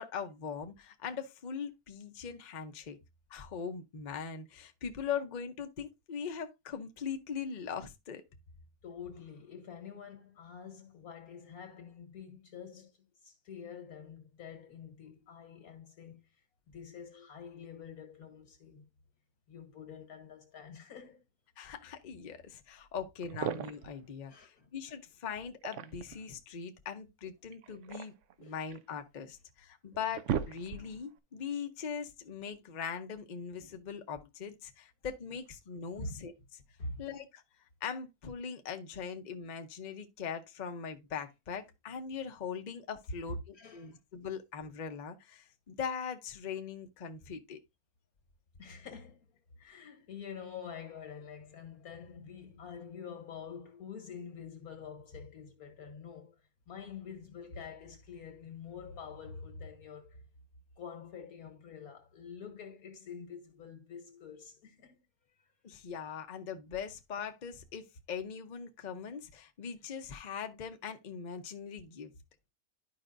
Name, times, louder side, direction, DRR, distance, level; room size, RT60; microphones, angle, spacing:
voice 1, 0.0-3.0 3.3-8.2 21.6-28.1 28.4-36.3 37.0-37.4 37.8-47.6 65.6-72.1, left 7 dB, 40° left, 0.7 m, -41 dB
voice 2, 8.8-16.2 16.7-18.9 19.5-21.2 23.4-23.5 24.3-24.7 28.4-28.6 36.0-36.2 36.8-37.0 43.3-44.0 48.6-56.4 56.7-60.2 60.8-65.0 65.4-65.5, left 5 dB, 80° left, 2.0 m, -47 dB
sound 1, 22.8-22.9 23.2-24.0 25.4-26.2 27.5-28.9 29.5-29.6 29.9-31.1, right 9 dB, 65° right, 0.9 m, -37 dB
11.5 x 5.1 x 2.5 m
omnidirectional pair, 1.5 m